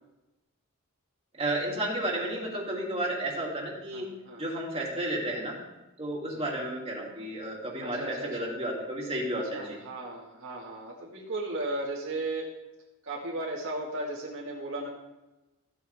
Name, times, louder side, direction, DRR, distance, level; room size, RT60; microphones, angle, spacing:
voice 1, 1.4-4.1 4.4-5.6 6.0-9.8, right 1 dB, 25° right, -3 dB, 2.6 m, -32 dB
voice 2, 3.9-4.4 6.2-6.5 7.8-8.5 9.3-12.5 13.0-14.9, right 2 dB, 60° right, -4 dB, 1.9 m, -36 dB
14.5 x 8.4 x 3.5 m, 1.0 s
head